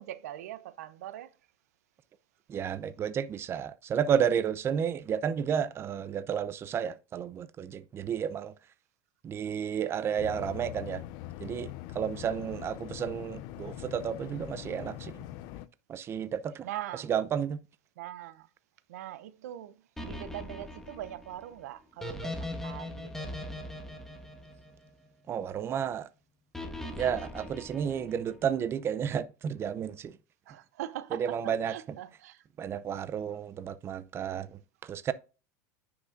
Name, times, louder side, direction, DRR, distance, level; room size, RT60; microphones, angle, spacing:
voice 1, 0.0-1.4 12.2-12.7 16.6-17.1 18.0-18.5 18.9-23.3 30.5-32.5, right 13 dB, 85° right, 0.7 m, -42 dB
voice 2, 2.5-8.5 9.2-11.0 11.4-15.2 15.9-16.7 17.1-17.6 25.3-26.1 27.0-30.2 31.1-31.7 32.6-35.1, right 8 dB, 30° right, 0.6 m, -32 dB
sound 1, 10.2-15.7, left 14 dB, 60° left, 0.6 m, -42 dB
sound 2, 20.0-25.3 26.5-28.5, left 1 dB, 5° left, 1.5 m, -40 dB
9.9 x 5.9 x 2.5 m
supercardioid pair, 115°, 8 cm